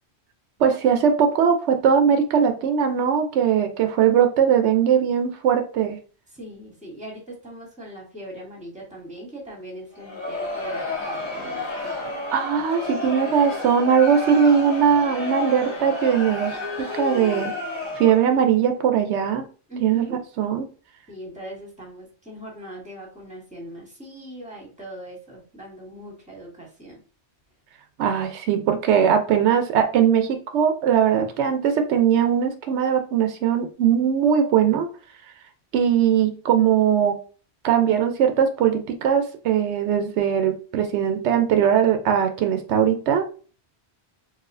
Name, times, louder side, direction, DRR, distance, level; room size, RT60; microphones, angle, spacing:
voice 1, 0.6-6.0 12.3-16.6 16.9-17.5 18.0-19.4 19.8-20.7 28.0-34.9 35.7-37.2 37.6-43.3, right 8 dB, 85° right, 7 dB, 0.9 m, -20 dB
voice 2, 6.3-12.1 19.7-20.2 21.1-27.0, right 1 dB, 5° right, -3 dB, 1.3 m, -40 dB
Crowd, 9.9-18.4, left 2 dB, 25° left, 1.0 m, -31 dB
4.1 x 2.3 x 2.5 m, 0.38 s
omnidirectional pair, 1.1 m